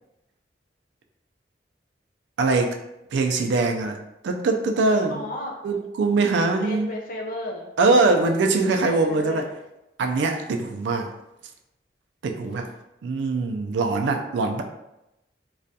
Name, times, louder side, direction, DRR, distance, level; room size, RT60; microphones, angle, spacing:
voice 1, 2.4-2.8 3.1-4.0 4.2-5.2 5.6-6.9 7.8-9.5 10.0-11.1 12.2-12.7 13.0-14.6, right 3 dB, 75° right, 4 dB, 0.3 m, -22 dB
voice 2, 5.1-5.6 6.6-7.7 8.5-9.5, left 1 dB, 45° left, 0 dB, 0.4 m, -34 dB
2.3 x 2.1 x 2.6 m, 0.90 s
head